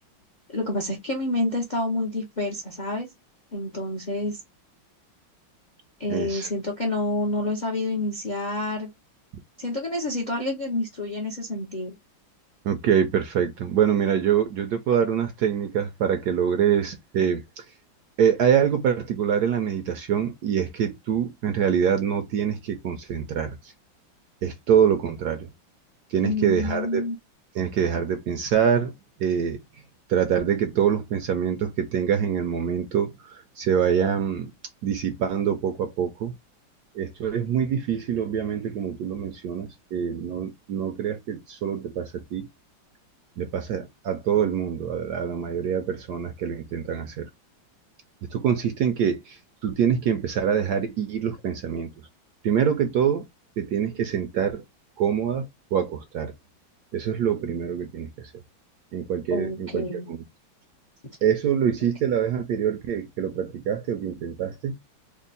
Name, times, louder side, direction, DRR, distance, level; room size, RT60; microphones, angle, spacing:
voice 1, 0.5-3.1 3.5-4.4 6.0-8.9 9.6-11.9 26.2-27.2 59.3-60.1, left 2 dB, 50° left, 0.5 m, -28 dB
voice 2, 6.1-6.5 12.6-17.7 18.2-23.7 24.4-25.5 26.1-27.1 27.5-28.9 29.2-29.6 30.1-34.5 34.8-36.3 36.9-42.5 43.4-47.3 48.3-51.9 52.4-53.3 53.6-54.6 55.0-56.3 56.9-58.3 58.9-60.2 61.2-64.8, right 8 dB, 70° right, 1.0 m, -25 dB
3.5 x 2.2 x 3.9 m
omnidirectional pair, 2.1 m